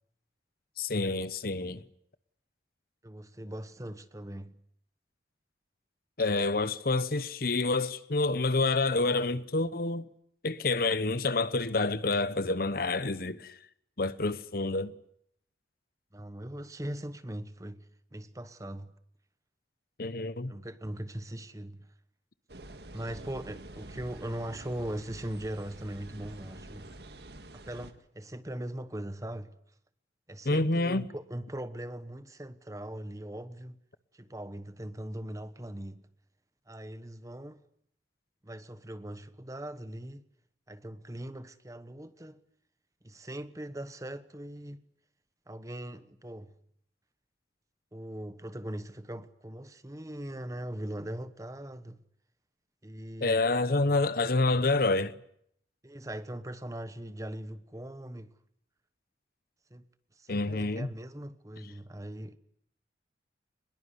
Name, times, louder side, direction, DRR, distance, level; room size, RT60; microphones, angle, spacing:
voice 1, 0.8-1.8 6.2-10.1 10.4-13.5 14.0-14.9 20.0-20.5 30.4-31.1 53.2-55.1 60.3-60.9, left 3 dB, 55° left, 1.0 m, -28 dB
voice 2, 3.0-4.5 16.1-18.9 20.5-21.9 22.9-26.9 27.5-29.6 30.3-33.8 34.1-36.1 36.7-37.6 38.4-40.2 40.7-42.4 43.0-44.8 45.5-46.5 47.9-52.0 52.8-53.4 55.8-58.3 59.7-59.8 60.2-62.4, right 1 dB, 20° right, 1.1 m, -40 dB
sound 1, 22.5-27.9, right 1 dB, 60° right, 2.0 m, -47 dB
23.5 x 21.5 x 9.7 m
head